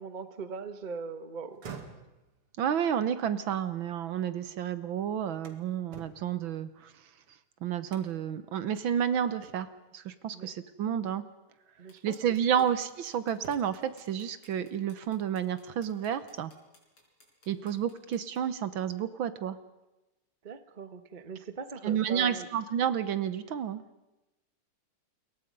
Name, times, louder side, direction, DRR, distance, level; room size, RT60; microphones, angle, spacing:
voice 1, 0.0-1.6 10.3-10.5 11.8-12.7 17.5-17.7 20.4-22.5, right 5 dB, 25° right, 10 dB, 1.1 m, -41 dB
sound 1, 1.4-4.5 4.9-7.3 7.9-8.3 8.8-8.9 9.4-9.9 11.1-11.3 11.9-13.0 13.3-13.9, right 6 dB, 90° right, 3.1 m, -50 dB
voice 2, 2.6-6.9 7.6-11.2 12.0-16.5 17.5-19.6 21.8-23.8, right 9 dB, 65° right, 13 dB, 1.7 m, -30 dB
sound 2, 11.9-18.4, left 2 dB, 70° left, 5.5 m, -61 dB
29.0 x 22.5 x 5.4 m, 1.0 s
omnidirectional pair, 2.4 m